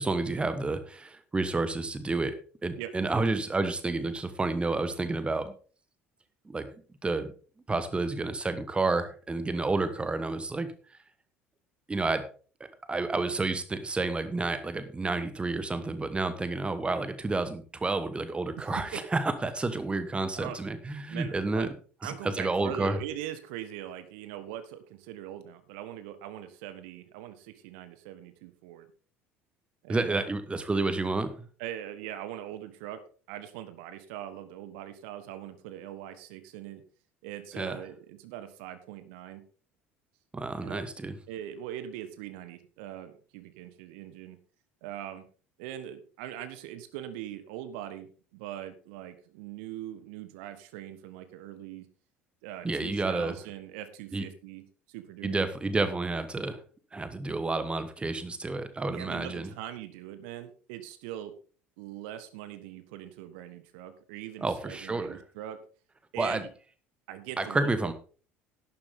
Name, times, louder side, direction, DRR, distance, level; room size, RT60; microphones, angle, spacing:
voice 1, 0.0-5.5 6.5-6.7 7.0-7.3 7.7-10.7 11.9-12.3 12.9-21.7 22.0-23.0 29.9-31.4 37.6-37.8 40.3-41.1 52.6-53.3 54.1-54.3 55.2-56.6 56.9-59.5 64.4-65.2 66.2-66.4 67.4-67.9, right 3 dB, 15° right, 11 dB, 1.3 m, -30 dB
voice 2, 18.6-19.0 20.4-20.6 21.1-21.7 22.0-28.9 29.8-30.3 31.6-33.0 33.3-36.8 37.2-39.4 40.6-40.8 41.3-44.4 44.8-45.3 45.6-51.8 52.4-55.5 58.9-61.3 61.8-65.6 66.1-66.5 67.1-67.9, right 12 dB, 60° right, 11 dB, 1.4 m, -41 dB
11.5 x 11.5 x 3.8 m, 0.39 s
figure-of-eight pair, 60°, 7 cm